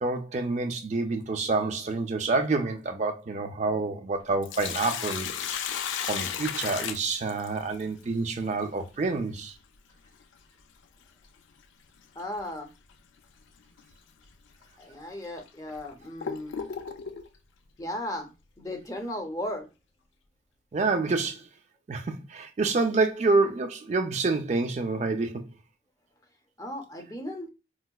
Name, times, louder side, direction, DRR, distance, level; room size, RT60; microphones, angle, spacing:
voice 1, 0.0-5.3 6.1-9.5 20.7-21.5 21.9-25.4, right 3 dB, 40° right, 0.4 m, -27 dB
Sink (filling or washing), 4.2-7.8 10.2-10.3 12.2-12.4 12.9-13.0 13.8-13.9 14.6-14.7 15.4-17.3, left 7 dB, 85° left, 0.4 m, -34 dB
voice 2, 12.2-12.7 14.8-16.6 17.8-18.3 18.6-19.7 26.6-27.5, left 1 dB, 20° left, 0.5 m, -36 dB
4.5 x 2.0 x 2.2 m
head